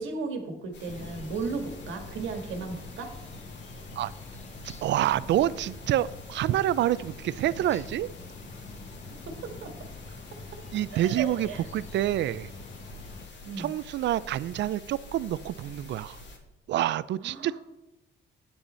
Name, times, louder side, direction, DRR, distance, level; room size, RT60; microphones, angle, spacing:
voice 1, 0.0-3.1 8.5-8.6 9.2-9.7 10.9-11.6 13.4-13.7 17.2-17.6, right 4 dB, 85° right, 5 dB, 1.7 m, -35 dB
sound 1, 0.7-16.4, left 1 dB, 65° left, 1.9 m, -47 dB
sound 2, 0.9-13.3, left 4 dB, 35° left, 0.9 m, -46 dB
voice 2, 4.8-8.1 10.7-12.5 13.6-16.2 16.7-17.5, right 13 dB, 65° right, 19 dB, 0.4 m, -27 dB
8.8 x 8.6 x 4.2 m, 0.94 s
cardioid pair, 90°, 20 cm